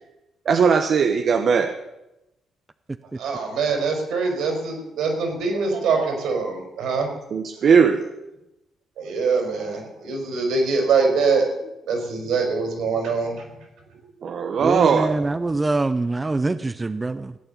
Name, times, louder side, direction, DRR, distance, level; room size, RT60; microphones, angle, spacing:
voice 1, 0.4-1.7 7.3-8.3 14.2-15.2, right 6 dB, 55° right, 6 dB, 1.1 m, -19 dB
voice 2, 3.1-7.1 9.0-11.5 11.9-13.5, right 4 dB, 80° right, 3 dB, 4.7 m, -23 dB
voice 3, 14.6-17.4, right 2 dB, 20° right, 11 dB, 0.7 m, -24 dB
16.5 x 8.9 x 8.3 m, 0.94 s
cardioid pair, 90°, 0 cm